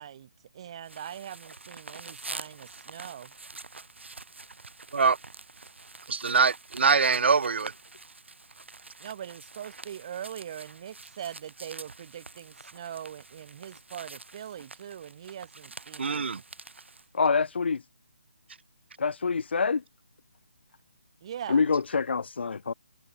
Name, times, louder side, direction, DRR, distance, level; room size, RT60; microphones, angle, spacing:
voice 1, 0.0-3.3 9.0-16.4 21.2-21.6, right 9 dB, 30° right, 1.9 m, -42 dB
sound 1, 0.8-17.1, right 3 dB, 85° right, 7.8 m, -46 dB
voice 2, 6.1-7.7 16.0-16.4, right 5 dB, 70° right, 0.4 m, -23 dB
voice 3, 17.1-17.8 19.0-19.8 21.5-22.7, left 5 dB, 70° left, 0.5 m, -26 dB
hypercardioid pair, 170°, 6 cm